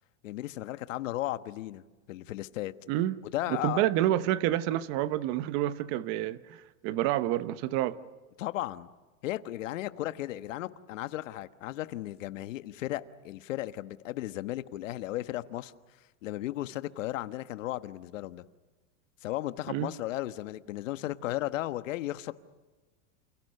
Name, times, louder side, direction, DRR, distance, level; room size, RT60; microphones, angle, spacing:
voice 1, 0.2-1.8 2.1-2.7 3.3-3.8 8.4-8.9 9.2-15.7 16.2-18.4 19.2-22.3, left 15 dB, 70° left, 1.3 m, -35 dB
voice 2, 2.9-3.2 3.6-8.0 19.7-19.9, right 13 dB, 35° right, 0.9 m, -28 dB
28.5 x 28.5 x 6.7 m
supercardioid pair, 165°, 40 cm